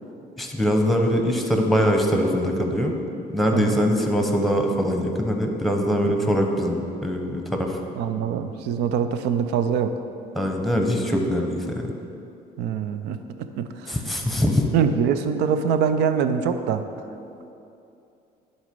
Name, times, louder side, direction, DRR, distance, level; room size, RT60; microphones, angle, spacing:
voice 1, 0.4-2.9 3.3-7.8 10.3-11.9 13.9-14.7, equal, ahead, 2 dB, 0.9 m, -22 dB
voice 2, 8.0-9.9 12.6-14.0 14.7-16.9, right 7 dB, 85° right, 9 dB, 0.5 m, -24 dB
10.5 x 4.2 x 5.2 m, 2.7 s
cardioid pair, 110°, 17 cm